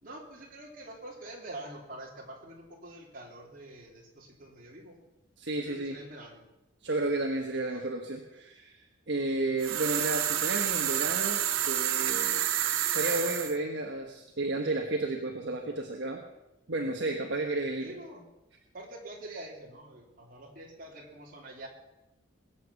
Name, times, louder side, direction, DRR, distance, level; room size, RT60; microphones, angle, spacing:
voice 1, 0.0-5.0 5.6-6.4 7.7-7.9 17.1-17.3 17.8-18.2 18.7-21.7, right 1 dB, 45° right, -2 dB, 3.5 m, -46 dB
voice 2, 5.4-6.0 6.8-12.4 12.9-16.2 16.7-17.9, right 2 dB, 60° right, 2 dB, 1.4 m, -32 dB
sound 1, 9.6-13.5, right 11 dB, 80° right, 1.0 m, -29 dB
21.0 x 8.3 x 7.1 m, 0.93 s
head